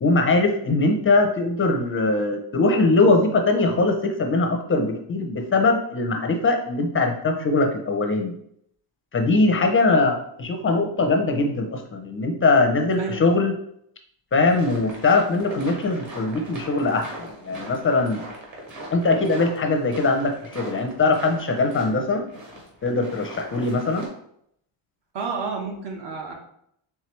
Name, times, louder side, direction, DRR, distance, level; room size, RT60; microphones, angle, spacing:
voice 1, 0.0-8.3 9.1-13.5 14.3-18.2 18.9-22.2 22.8-24.1, left 3 dB, 25° left, 4 dB, 0.5 m, -21 dB
sound 1, 14.3-24.1, right 1 dB, 35° right, 1.3 m, -40 dB
voice 2, 25.1-26.3, right 4 dB, 55° right, 1 dB, 1.1 m, -30 dB
4.4 x 3.5 x 3.1 m, 0.71 s
cardioid pair, 145°, 50 cm